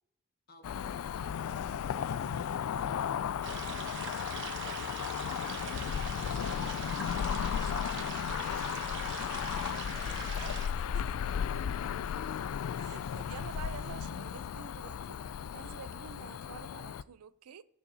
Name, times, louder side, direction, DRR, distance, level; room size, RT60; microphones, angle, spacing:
voice 1, 0.5-2.6 4.5-4.8 9.2-10.3 13.0-13.1, left 1 dB, 45° left, 1.2 m, -57 dB
Cricket / Motor vehicle (road), 0.6-17.0, left 8 dB, 70° left, 0.3 m, -35 dB
sound 1, 3.4-10.7, right 6 dB, 55° right, 1.0 m, -43 dB
voice 2, 3.4-3.9 6.3-6.6 7.6-7.9 10.3-11.6 12.8-15.2 15.5-17.6, right 7 dB, 85° right, 0.5 m, -49 dB
17.0 x 7.3 x 2.8 m
head